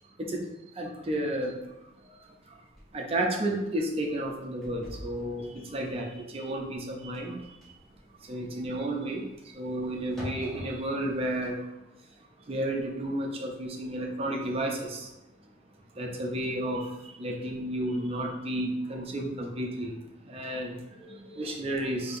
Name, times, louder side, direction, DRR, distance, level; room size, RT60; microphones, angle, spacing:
voice 1, 0.0-2.6 2.9-7.8 8.2-15.1 15.9-22.2, right 1 dB, 30° right, 0 dB, 0.5 m, -33 dB
sound 1, 1.6-1.7 2.2-2.3 2.7-2.9 3.3-3.6 4.0-11.2, equal, ahead, 0.9 m, -45 dB
4.2 x 2.7 x 2.5 m, 1.0 s
head